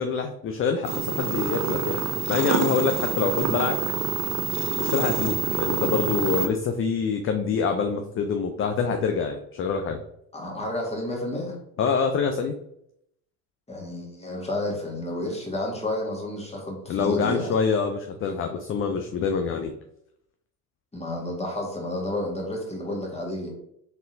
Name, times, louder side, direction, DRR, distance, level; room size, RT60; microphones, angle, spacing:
voice 1, 0.0-2.0 2.3-3.8 4.8-10.0 11.8-12.5 16.9-19.7, left 5 dB, 30° left, 6 dB, 0.4 m, -26 dB
sound 1, 0.8-6.5, right 6 dB, 35° right, 0.6 m, -27 dB
voice 2, 10.3-11.6 13.7-17.5 20.9-23.5, left 1 dB, 15° left, -1 dB, 1.6 m, -31 dB
4.0 x 3.7 x 2.6 m, 0.74 s
hypercardioid pair, 60°, 47 cm